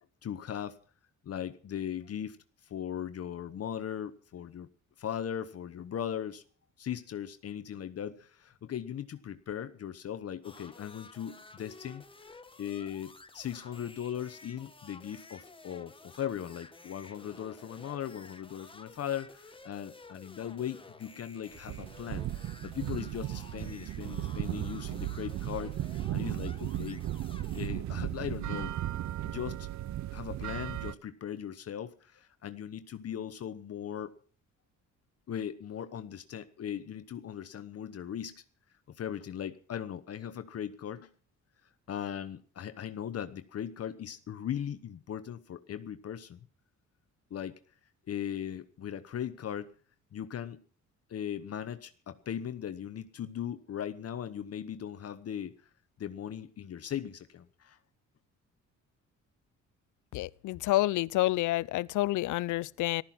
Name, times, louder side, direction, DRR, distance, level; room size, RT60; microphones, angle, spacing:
voice 1, 0.2-0.8 1.2-4.7 5.0-6.4 6.8-12.0 12.6-27.0 27.5-28.8 29.2-29.7 30.1-34.1 35.3-38.4 38.9-41.1 41.9-46.4 47.3-47.6 48.1-49.7 50.1-50.6 51.1-55.5 56.0-57.8, left 9 dB, 55° left, 1.0 m, -38 dB
sound 1, 10.4-27.7, left 3 dB, 15° left, 1.5 m, -53 dB
sound 2, 21.5-30.9, right 13 dB, 65° right, 0.7 m, -36 dB
voice 2, 60.1-63.0, left 17 dB, 80° left, 0.6 m, -29 dB
14.5 x 13.0 x 5.9 m
cardioid pair, 90°, 30 cm